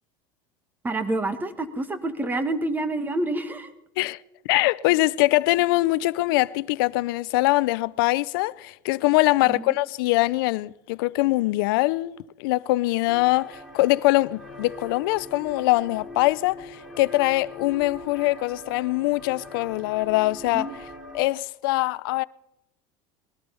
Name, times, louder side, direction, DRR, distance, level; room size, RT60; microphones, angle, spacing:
voice 1, 0.8-3.7 9.5-9.7 20.5-20.7, right 2 dB, 15° right, 1.4 m, -28 dB
voice 2, 4.5-20.7 21.1-22.2, left 20 dB, 80° left, 0.5 m, -23 dB
sound 1, 13.1-21.3, left 1 dB, ahead, 3.0 m, -42 dB
19.5 x 13.0 x 5.5 m
supercardioid pair, 120°, 12 cm